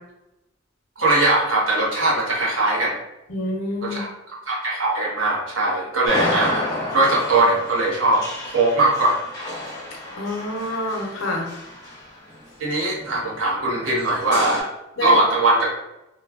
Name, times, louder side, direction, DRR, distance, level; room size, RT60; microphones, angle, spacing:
voice 1, 1.0-3.0 3.8-4.1 4.5-8.2 8.5-9.2 12.6-14.7 15.0-15.7, right 2 dB, 85° right, -4 dB, 0.9 m, -20 dB
voice 2, 3.3-4.0 10.2-11.5 15.0-15.2, left 2 dB, 80° left, -1 dB, 0.7 m, -27 dB
sound 1, 6.0-12.4 13.0-14.6, left 1 dB, 20° left, 0.9 m, -31 dB
3.1 x 2.1 x 2.4 m, 0.92 s
head